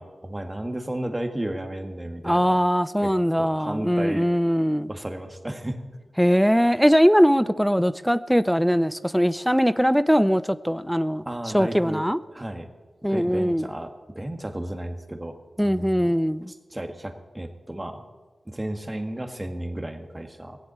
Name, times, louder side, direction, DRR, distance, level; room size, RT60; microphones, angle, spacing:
voice 1, 0.0-2.6 3.0-3.1 3.4-4.3 4.9-5.9 6.6-6.8 11.3-12.0 12.3-12.7 13.1-16.1 16.5-18.0 18.5-20.6, right 1 dB, 20° right, 1.7 m, -33 dB
voice 2, 2.2-4.9 6.2-11.2 11.5-12.2 13.0-13.7 15.6-16.5, equal, ahead, 0.5 m, -21 dB
18.0 x 7.8 x 8.7 m
cardioid pair, 50°, 0 cm